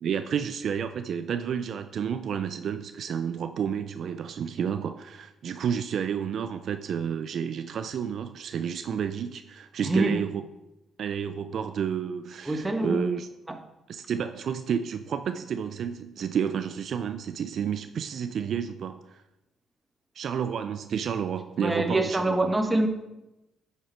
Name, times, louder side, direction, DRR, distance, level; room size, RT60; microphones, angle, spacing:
voice 1, 0.0-10.4 11.0-13.3 13.9-19.2 20.2-22.5, right 7 dB, 60° right, 0.4 m, -30 dB
voice 2, 9.8-10.2 12.4-13.1 13.5-13.6 21.6-22.9, right 2 dB, 15° right, 1.3 m, -25 dB
9.9 x 6.6 x 4.6 m
cardioid pair, 90°, 0 cm